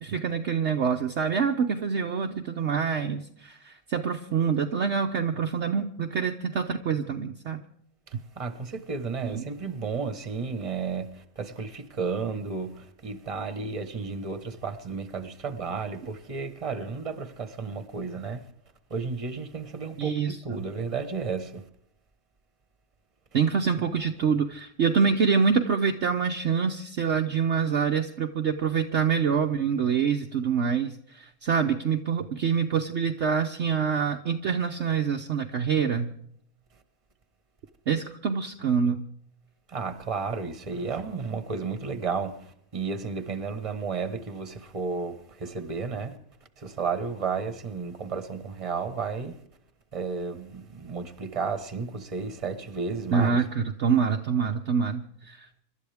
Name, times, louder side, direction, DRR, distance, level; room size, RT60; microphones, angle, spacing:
voice 1, 0.0-7.6 9.2-9.4 20.0-20.4 23.3-36.1 37.9-39.0 53.1-55.6, right 6 dB, 55° right, 1.0 m, -26 dB
voice 2, 8.1-18.5 18.9-21.7 39.7-46.2 46.6-49.4 49.9-53.5, right 5 dB, 25° right, 1.3 m, -33 dB
26.5 x 12.5 x 3.5 m
omnidirectional pair, 1.6 m